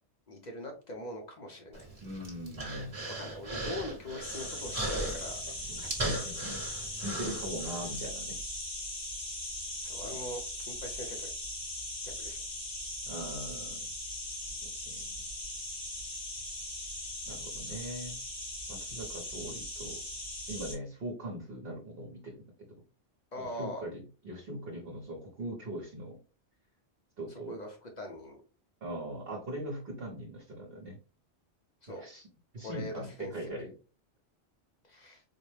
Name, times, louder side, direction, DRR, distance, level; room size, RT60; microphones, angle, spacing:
voice 1, 0.3-1.9 3.1-5.4 6.1-6.2 9.8-11.3 12.0-12.4 17.6-17.8 23.3-23.8 27.5-28.4 31.8-32.1 32.6-33.3 33.6-33.7 34.9-35.2, left 1 dB, 45° left, 1 dB, 0.7 m, -42 dB
Human voice, 1.7-8.0, right 2 dB, 30° right, 1.1 m, -38 dB
voice 2, 2.0-3.0 5.7-6.6 7.0-8.4 10.1-10.2 13.0-13.9 14.9-15.0 17.3-18.2 18.7-20.0 20.5-22.8 23.4-26.2 27.2-27.6 28.8-31.0 31.9-32.3 32.5-33.7, right 1 dB, 60° right, -1 dB, 1.0 m, -40 dB
sound 1, 4.2-20.7, left 1 dB, 90° left, 2.6 m, -39 dB
4.2 x 2.1 x 3.1 m, 0.35 s
omnidirectional pair, 1.2 m